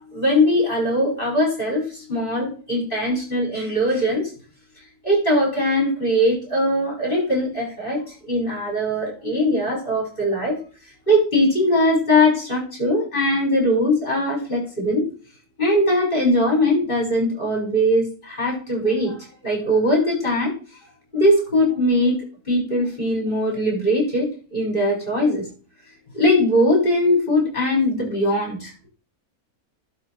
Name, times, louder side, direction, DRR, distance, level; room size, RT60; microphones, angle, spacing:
voice 1, 0.0-4.3 5.0-10.6 11.1-15.0 15.6-19.2 19.4-20.5 21.1-25.4 26.1-28.7, left 1 dB, 35° left, -2 dB, 6.8 m, -20 dB
12.0 x 4.3 x 6.4 m, 0.36 s
omnidirectional pair, 1.6 m